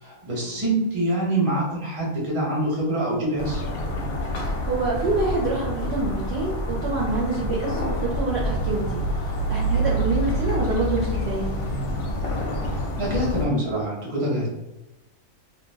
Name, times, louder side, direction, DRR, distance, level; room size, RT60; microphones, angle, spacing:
voice 1, 0.0-3.6 13.0-14.5, right 1 dB, 25° right, -3 dB, 0.8 m, -25 dB
sound 1, 3.4-13.5, equal, 85° left, 1.0 m, -27 dB
voice 2, 4.6-11.5, right 3 dB, 60° right, -4 dB, 0.7 m, -26 dB
2.5 x 2.1 x 3.3 m, 0.96 s
omnidirectional pair, 1.4 m